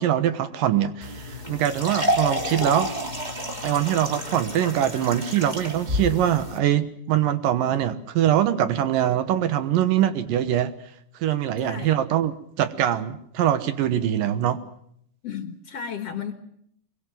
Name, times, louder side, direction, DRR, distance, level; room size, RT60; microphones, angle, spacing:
voice 1, 0.0-2.9 3.6-10.7 11.2-14.6, right 11 dB, 75° right, 11 dB, 2.8 m, -23 dB
sound 1, 1.0-6.6, left 1 dB, 15° right, 2.8 m, -29 dB
voice 2, 11.6-12.0 15.2-16.3, left 7 dB, 55° left, 7 dB, 2.0 m, -34 dB
23.5 x 22.5 x 7.5 m, 0.71 s
omnidirectional pair, 4.1 m